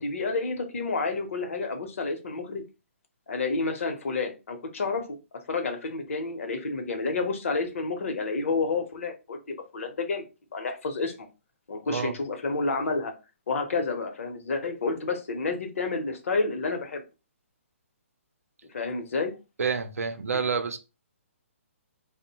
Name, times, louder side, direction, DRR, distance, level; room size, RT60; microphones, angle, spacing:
voice 1, 0.0-2.6 3.3-5.2 5.5-11.3 11.7-13.1 13.5-17.0 18.7-19.3 20.3-20.4, left 3 dB, 70° left, 0.7 m, -30 dB
voice 2, 19.6-20.8, right 5 dB, 85° right, 0.5 m, -28 dB
2.6 x 2.1 x 2.7 m
hypercardioid pair, 150°, 7 cm